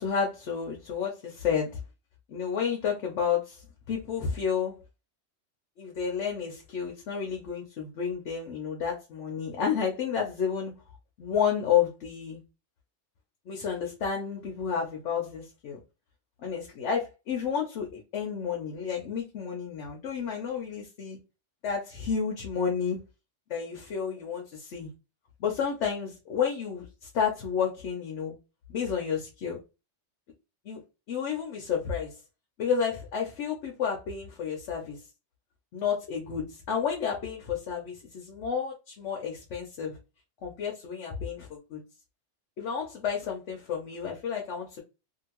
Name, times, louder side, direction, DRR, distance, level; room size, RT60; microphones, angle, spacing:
voice 1, 0.0-1.7 2.3-4.8 5.8-10.7 11.2-12.4 13.5-15.8 16.4-21.2 21.6-23.0 23.5-24.9 25.4-28.3 28.7-29.6 30.6-30.8 31.1-32.2 32.6-35.0 35.7-40.0 40.4-41.8 42.6-44.8, left 7 dB, 75° left, 1.0 m, -31 dB
2.7 x 2.5 x 2.9 m
omnidirectional pair, 1.2 m